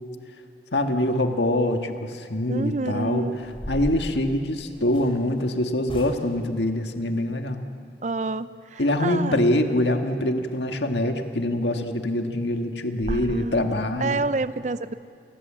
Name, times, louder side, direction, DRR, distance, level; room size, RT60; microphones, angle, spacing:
voice 1, 0.7-3.3 3.7-7.7 8.8-14.2, left 1 dB, 85° left, 5 dB, 1.8 m, -24 dB
voice 2, 2.5-3.4 8.0-9.4 13.1-13.6 14.0-14.9, right 3 dB, 40° right, 14 dB, 0.6 m, -28 dB
sound 1, 3.4-5.2 5.8-6.5 11.0-11.2 11.6-11.7 12.1-12.2 12.6-12.7 13.0-13.3, equal, 30° left, 2.9 m, -36 dB
28.5 x 20.5 x 7.5 m, 2.4 s
head